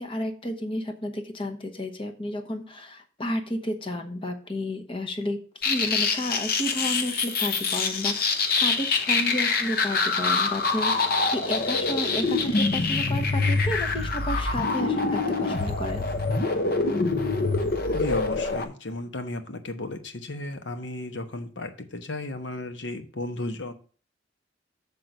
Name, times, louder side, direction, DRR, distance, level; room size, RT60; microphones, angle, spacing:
voice 1, 0.0-16.0, left 1 dB, 30° left, 6 dB, 1.0 m, -32 dB
sound 1, 5.6-18.6, left 3 dB, 55° left, 0.9 m, -25 dB
voice 2, 17.9-23.7, left 2 dB, 70° left, 7 dB, 1.1 m, -34 dB
7.6 x 3.8 x 6.6 m, 0.40 s
head